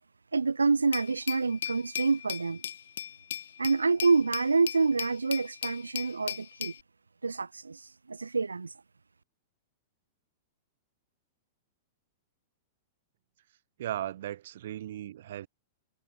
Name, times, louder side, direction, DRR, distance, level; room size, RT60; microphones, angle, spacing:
voice 1, 0.3-2.6 3.6-6.7 7.2-8.7, right 4 dB, 80° right, 0.7 m, -27 dB
Glass, 0.9-6.8, left 10 dB, 60° left, 2.0 m, -38 dB
voice 2, 13.8-15.5, right 12 dB, 55° right, 7.1 m, -37 dB
figure-of-eight pair, 100°, 0 cm